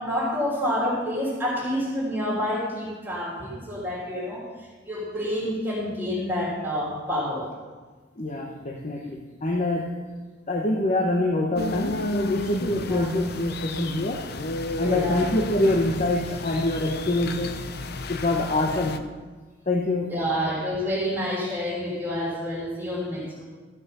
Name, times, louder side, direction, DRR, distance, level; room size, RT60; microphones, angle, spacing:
voice 1, 0.0-4.4 4.8-7.5 12.8-13.1 14.8-15.2 20.1-23.4, equal, 10° right, -9 dB, 3.3 m, -28 dB
voice 2, 8.2-10.0 10.5-14.3 14.8-17.5 18.1-19.0 19.7-20.2, left 2 dB, 40° left, 1 dB, 0.9 m, -25 dB
sound 1, 11.6-19.0, left 2 dB, 60° left, 0.6 m, -32 dB
14.0 x 6.3 x 6.7 m, 1.4 s
head